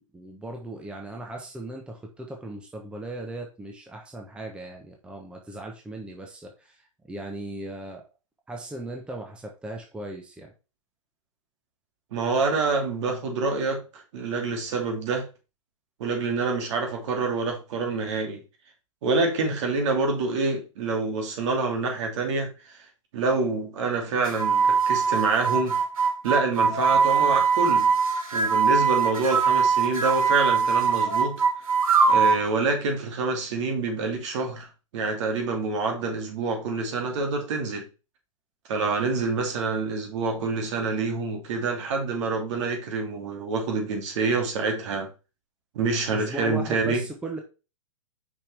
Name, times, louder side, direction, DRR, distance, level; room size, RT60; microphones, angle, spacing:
voice 1, 0.0-8.0 8.5-10.5 46.1-47.4, right 2 dB, 5° right, 1.0 m, -38 dB
voice 2, 12.1-15.3 16.0-18.4 19.0-22.8 23.1-25.8 26.2-27.9 28.3-31.4 32.1-37.9 38.7-45.1 45.7-47.0, right 3 dB, 60° right, 2.4 m, -27 dB
sound 1, 24.2-32.4, right 5 dB, 80° right, 1.9 m, -22 dB
5.7 x 5.4 x 3.5 m
hypercardioid pair, 135°, 17 cm